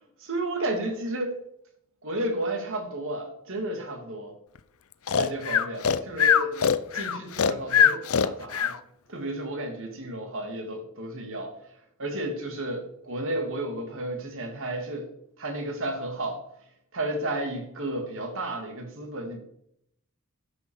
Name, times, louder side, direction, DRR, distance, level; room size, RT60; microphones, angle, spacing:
voice 1, 0.2-1.4 2.0-4.3 5.2-8.8 9.1-11.5 12.0-15.1 15.4-16.4 16.9-19.4, right 1 dB, 65° right, 5 dB, 2.4 m, -32 dB
Breathing, 5.1-8.8, left 7 dB, 70° left, 0.6 m, -22 dB
12.0 x 6.4 x 7.1 m, 0.75 s
head